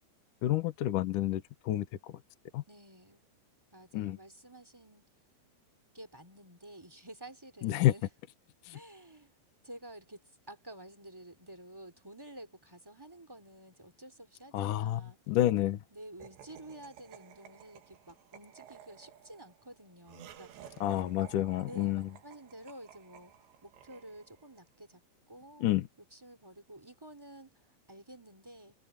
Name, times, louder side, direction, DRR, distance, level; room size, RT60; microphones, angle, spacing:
voice 1, 0.4-2.1 2.5-2.6 3.9-4.2 7.6-7.9 8.7-8.8 14.5-15.8 20.8-22.1 25.6-25.9, left 13 dB, 70° left, 2.0 m, -29 dB
voice 2, 2.7-3.2 3.7-5.1 5.9-8.1 8.7-9.3 9.6-15.2 15.9-20.8 21.7-25.0 25.3-25.7 26.1-28.7, right 1 dB, 5° right, 2.4 m, -51 dB
Laughter, 16.2-24.6, right 10 dB, 70° right, 4.0 m, -54 dB
omnidirectional pair, 5.3 m